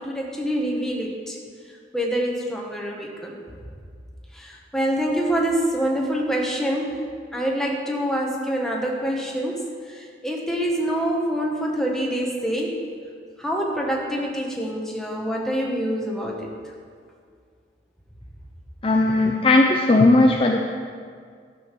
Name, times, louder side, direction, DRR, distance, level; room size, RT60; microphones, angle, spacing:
voice 1, 0.0-1.4 1.9-3.4 4.4-7.0 7.3-12.8 13.4-16.5, equal, 5° left, -2 dB, 1.4 m, -26 dB
voice 2, 18.8-20.6, left 2 dB, 30° left, 2 dB, 0.5 m, -17 dB
13.0 x 6.5 x 6.0 m, 2.1 s
head